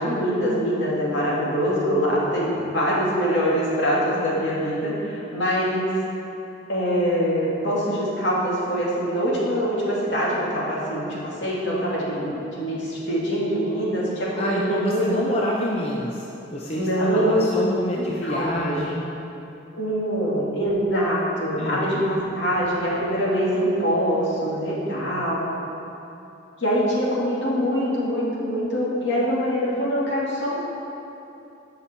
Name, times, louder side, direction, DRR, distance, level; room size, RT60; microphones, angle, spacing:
voice 1, 0.0-5.9 6.7-15.4 16.7-18.8 19.8-25.5 26.6-30.7, equal, 65° left, -6 dB, 2.4 m, -24 dB
voice 2, 14.4-19.1 21.6-22.2, left 1 dB, 30° left, -3 dB, 0.6 m, -28 dB
14.0 x 5.8 x 4.5 m, 2.9 s
head